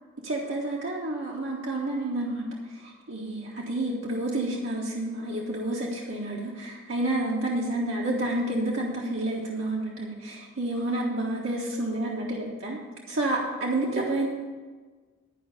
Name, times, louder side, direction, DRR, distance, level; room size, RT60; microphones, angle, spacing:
voice 1, 0.2-12.8 13.1-14.3, right 1 dB, 75° right, -4 dB, 1.4 m, -29 dB
11.5 x 5.3 x 8.2 m, 1.4 s
head